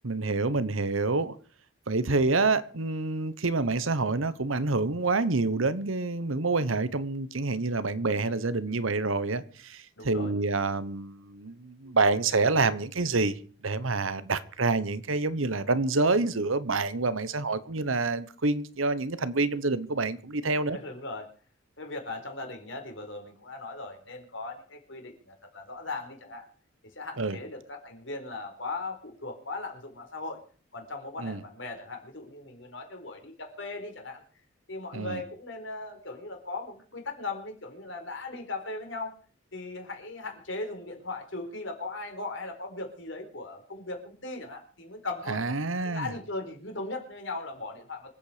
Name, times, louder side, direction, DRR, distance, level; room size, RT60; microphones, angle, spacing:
voice 1, 0.0-1.3 1.9-20.8 27.2-27.4 31.2-31.4 34.9-35.2 45.3-46.1, right 3 dB, 85° right, 1.1 m, -27 dB
voice 2, 10.0-10.3 20.7-21.3 21.8-26.5 27.0-30.4 30.7-34.2 34.7-39.2 39.5-45.4 45.8-48.1, left 2 dB, 70° left, 4.3 m, -38 dB
25.0 x 8.6 x 5.1 m
head